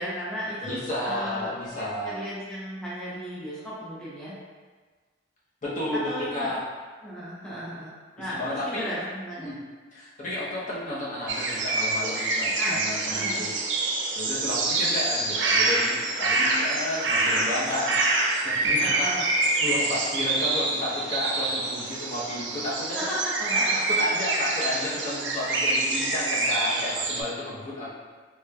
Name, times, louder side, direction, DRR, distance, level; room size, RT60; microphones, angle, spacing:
voice 1, 0.0-0.8 1.0-1.6 2.0-4.3 6.1-6.5 7.0-7.9 8.2-9.5 12.6-12.8 13.1-13.4 18.8-19.3 22.9-23.8, equal, 5° left, -10 dB, 0.7 m, -34 dB
voice 2, 0.6-2.1 5.6-6.6 8.3-8.9 9.4-9.6 9.9-13.5 14.1-19.1 19.4-23.0 23.7-27.9, left 1 dB, 45° left, -7 dB, 0.8 m, -32 dB
sound 1, 11.3-27.2, right 2 dB, 65° right, 0.5 m, -26 dB
3.1 x 3.1 x 2.3 m, 1.4 s
head